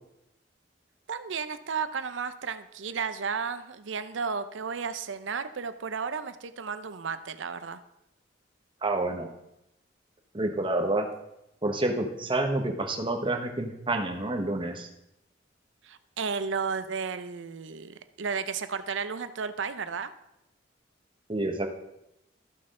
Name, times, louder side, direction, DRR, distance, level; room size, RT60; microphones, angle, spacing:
voice 1, 1.1-7.8 15.8-20.1, right 5 dB, 85° right, 12 dB, 0.6 m, -33 dB
voice 2, 8.8-9.3 10.3-11.1 11.6-14.9 21.3-21.7, right 2 dB, 30° right, 4 dB, 1.1 m, -28 dB
13.5 x 5.9 x 3.7 m, 0.87 s
head